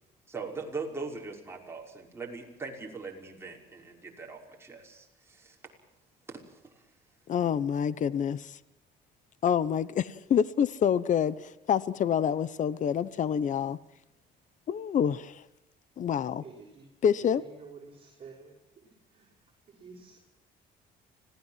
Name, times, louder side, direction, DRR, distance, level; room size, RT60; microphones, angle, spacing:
voice 1, 0.3-5.6 6.3-6.8, right 4 dB, 15° right, 5.9 m, -41 dB
voice 2, 7.3-8.6 9.4-13.8 14.7-15.4 16.0-16.4 17.0-17.4, left 8 dB, 50° left, 1.1 m, -27 dB
voice 3, 16.4-16.9 17.2-18.5 19.1-20.2, right 4 dB, 35° right, 5.8 m, -50 dB
26.0 x 17.5 x 7.6 m
cardioid pair, 110°, 17 cm